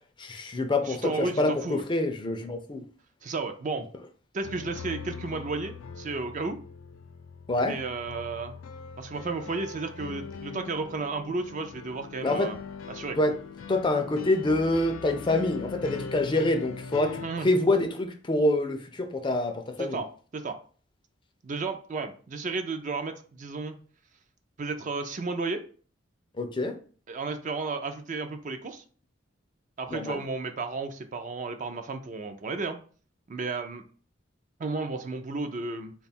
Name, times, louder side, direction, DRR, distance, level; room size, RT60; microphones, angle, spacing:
voice 1, 0.2-2.8 7.5-7.8 12.2-12.5 13.2-13.4 13.7-20.0 26.4-26.8 29.9-30.2, left 2 dB, 25° left, 0.4 m, -26 dB
voice 2, 0.8-1.8 3.2-3.8 4.3-6.6 7.6-8.5 9.0-12.6 12.9-13.2 17.2-17.5 19.8-20.1 20.3-20.6 21.4-23.7 24.6-25.6 27.1-28.8 29.8-32.8 33.3-33.8 34.6-35.9, right 3 dB, 40° right, 0.4 m, -33 dB
sound 1, 4.4-17.3, left 5 dB, 85° left, 0.4 m, -41 dB
3.6 x 2.3 x 4.1 m
head